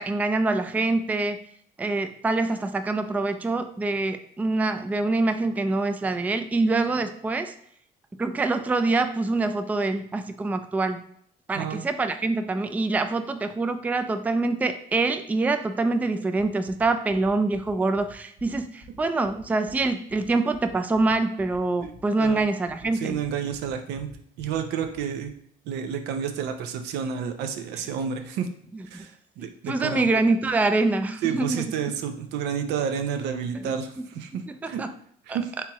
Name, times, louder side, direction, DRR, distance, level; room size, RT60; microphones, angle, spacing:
voice 1, 0.0-1.4 1.8-7.5 8.2-11.0 11.5-23.2 28.7-29.1 29.7-31.6 33.5-34.1 34.3-34.9 35.3-35.4, right 3 dB, 10° right, 8 dB, 0.3 m, -25 dB
sound 1, 16.4-25.3, right 1 dB, 55° right, 0.9 m, -51 dB
voice 2, 22.9-24.1 24.4-25.3 25.7-28.5 28.9-29.1 29.4-30.1 31.2-34.4 34.7-34.8 35.3-35.5, right 7 dB, 85° right, 7 dB, 0.6 m, -30 dB
4.4 x 3.5 x 2.9 m, 0.65 s
cardioid pair, 110°, 17 cm